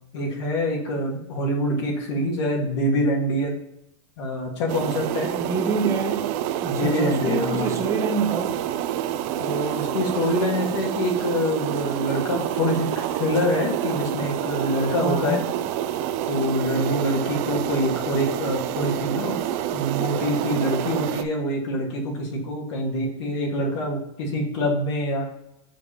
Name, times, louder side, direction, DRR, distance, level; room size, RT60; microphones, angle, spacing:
voice 1, 0.1-3.5 4.2-5.3 6.7-7.7 9.4-15.4 16.3-19.3 19.7-25.3, left 1 dB, 60° left, 2.1 m, -25 dB
sound 1, 4.7-21.2, right 11 dB, 45° right, 0.5 m, -28 dB
voice 2, 5.4-6.3 6.6-8.6 15.0-15.4, right 3 dB, 20° right, 1.2 m, -26 dB
5.1 x 3.4 x 5.5 m
hypercardioid pair, 130°, 17 cm